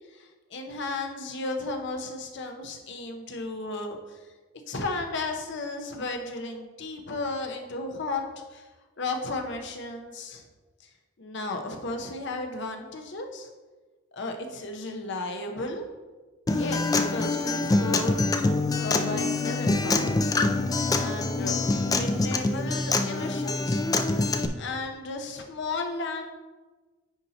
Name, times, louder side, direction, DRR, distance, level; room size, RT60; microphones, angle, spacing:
voice 1, 0.1-4.2 4.7-8.2 8.5-8.7 9.0-10.4 10.8-10.9 11.2-13.5 14.1-15.9 16.5-18.2 18.8-20.2 21.0-23.8 24.5-26.3, left 2 dB, 60° left, 4 dB, 0.8 m, -34 dB
Acoustic guitar, 16.5-24.5, left 3 dB, 20° left, 0.3 m, -25 dB
9.7 x 4.2 x 2.8 m, 1.3 s
head